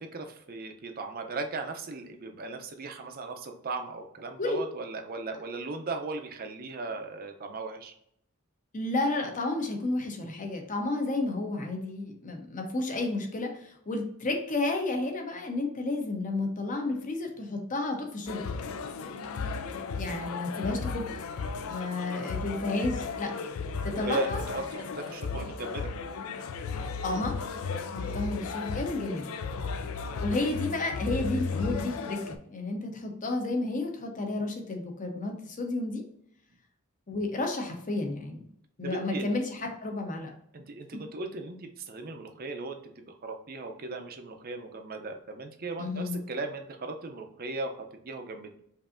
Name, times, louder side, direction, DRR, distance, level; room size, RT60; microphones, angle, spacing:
voice 1, 0.0-7.9 19.4-19.5 23.9-25.9 38.8-39.3 40.5-48.6, right 3 dB, 45° right, 5 dB, 0.5 m, -37 dB
voice 2, 8.7-18.4 20.0-21.0 21.7-23.3 23.8-24.4 27.0-27.3 27.9-29.4 30.2-36.0 37.1-38.4 38.8-40.3 45.8-46.2, left 2 dB, 35° left, 3 dB, 0.7 m, -31 dB
sound 1, 18.3-32.4, left 4 dB, 70° left, 0.4 m, -35 dB
5.3 x 2.6 x 2.5 m, 0.71 s
head